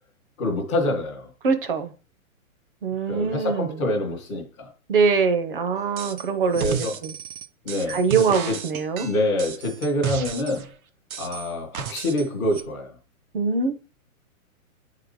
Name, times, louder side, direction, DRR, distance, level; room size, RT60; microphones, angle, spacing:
voice 1, 0.4-1.3 3.1-4.7 6.5-6.9 7.6-8.0 9.0-10.7 11.2-12.9, left 1 dB, 5° left, 0.5 m, -26 dB
voice 2, 1.4-1.9 2.8-3.8 4.9-7.1 7.9-9.1 13.3-13.7, right 5 dB, 40° right, 0.8 m, -23 dB
sound 1, 6.0-6.3 6.5-10.7 11.1-12.3 12.5-12.6, right 7 dB, 80° right, 0.9 m, -33 dB
8.2 x 3.9 x 4.8 m
hypercardioid pair, 175°, 43 cm